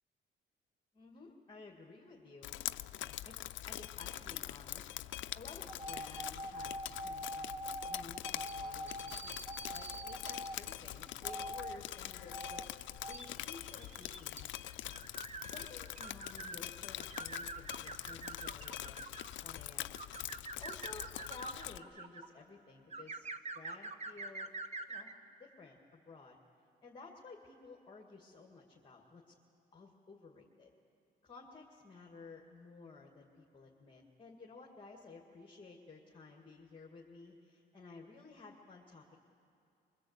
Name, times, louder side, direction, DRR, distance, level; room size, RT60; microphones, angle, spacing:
voice 1, 0.9-2.6 3.2-3.4 3.7-4.9 5.3-6.7 7.0-12.7 13.1-14.8 15.5-19.0 19.4-20.0 20.6-23.3 23.5-24.5 24.9-25.1 25.4-26.4 26.8-29.3 29.7-30.7 31.2-39.2, left 3 dB, 25° left, -1 dB, 2.2 m, -54 dB
Drip, 2.4-21.8, left 13 dB, 70° left, 0.5 m, -44 dB
sound 1, 5.6-10.6 11.2-11.8 12.3-12.7 13.0-16.6 17.0-19.4 19.9-22.3 22.9-25.1, right 1 dB, 35° right, 1.2 m, -44 dB
24.0 x 20.5 x 8.1 m, 2.6 s
cardioid pair, 90°, 20 cm